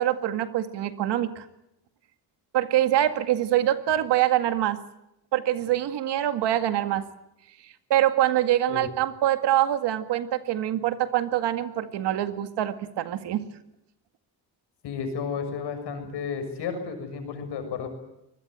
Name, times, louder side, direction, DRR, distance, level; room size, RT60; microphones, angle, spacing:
voice 1, 0.0-1.5 2.5-4.8 5.3-7.1 7.9-13.4, right 12 dB, 85° right, 9 dB, 2.0 m, -24 dB
voice 2, 14.8-17.9, left 6 dB, 85° left, 7 dB, 6.7 m, -32 dB
25.0 x 20.5 x 9.3 m, 0.86 s
cardioid pair, 90°, 40 cm